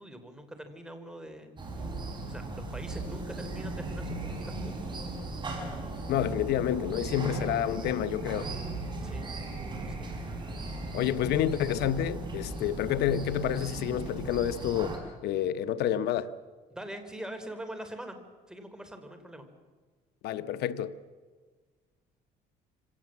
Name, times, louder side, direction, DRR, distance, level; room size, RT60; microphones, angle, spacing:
voice 1, 0.0-1.5 2.3-5.0 9.0-9.3 9.9-10.1 16.7-18.2 18.5-19.4, right 1 dB, 5° right, 3.4 m, -43 dB
sound 1, 1.6-15.0, right 2 dB, 25° right, 5.3 m, -37 dB
voice 2, 6.1-8.5 10.9-15.0 15.2-16.3 20.2-20.9, left 10 dB, 80° left, 1.1 m, -29 dB
25.5 x 17.5 x 7.4 m
cardioid pair, 110°, 17 cm